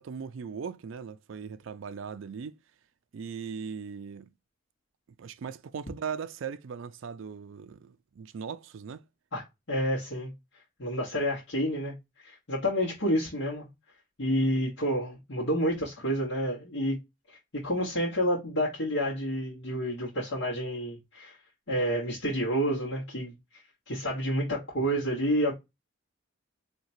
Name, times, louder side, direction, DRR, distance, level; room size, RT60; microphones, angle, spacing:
voice 1, 0.0-2.5 3.1-4.3 5.2-9.0, right 6 dB, 70° right, 0.4 m, -39 dB
voice 2, 9.3-10.3 10.8-13.7 14.2-17.0 17.3-21.4 21.7-25.5, equal, 65° left, 1.4 m, -29 dB
4.4 x 2.8 x 2.6 m
head